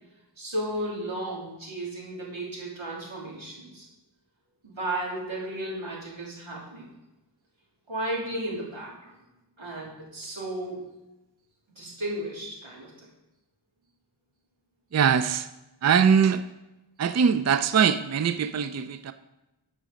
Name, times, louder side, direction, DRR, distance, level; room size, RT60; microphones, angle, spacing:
voice 1, 0.4-3.9 4.6-6.8 7.9-9.1 9.6-10.8 11.8-13.1, right 1 dB, 85° right, -5 dB, 2.9 m, -34 dB
voice 2, 14.9-15.5 15.8-16.4 17.0-19.1, right 7 dB, 40° right, 12 dB, 0.4 m, -22 dB
12.0 x 5.1 x 5.0 m, 1.0 s
wide cardioid pair, 50°, 46 cm